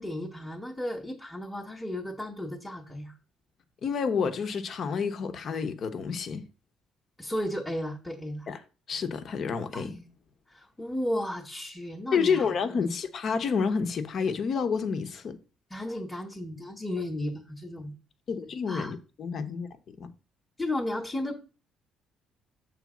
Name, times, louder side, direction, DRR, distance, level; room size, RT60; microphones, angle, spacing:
voice 1, 0.0-3.2 7.2-8.5 9.7-10.1 10.5-12.9 15.7-17.9 18.7-19.0 20.6-21.4, left 1 dB, 5° left, 1.0 m, -34 dB
voice 2, 3.8-6.5 8.5-8.6 8.9-9.9 12.1-15.4 18.3-19.7 20.0-20.1, left 6 dB, 50° left, 0.9 m, -29 dB
7.1 x 3.4 x 6.0 m
cardioid pair, 105°, 0 cm